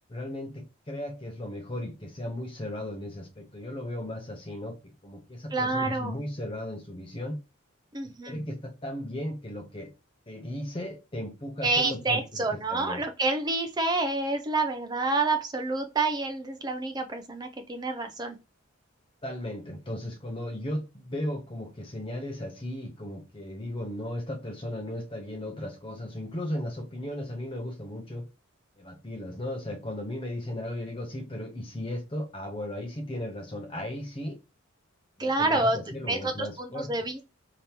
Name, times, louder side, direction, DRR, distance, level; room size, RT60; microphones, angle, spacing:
voice 1, 0.1-7.4 8.3-9.9 10.3-13.0 19.2-28.3 28.8-34.4 35.2-37.1, left 1 dB, 25° left, 0.7 m, -36 dB
voice 2, 5.5-6.1 7.9-8.4 11.6-18.4 35.2-35.8 36.0-37.2, right 3 dB, 20° right, 0.4 m, -28 dB
3.4 x 2.9 x 2.9 m
head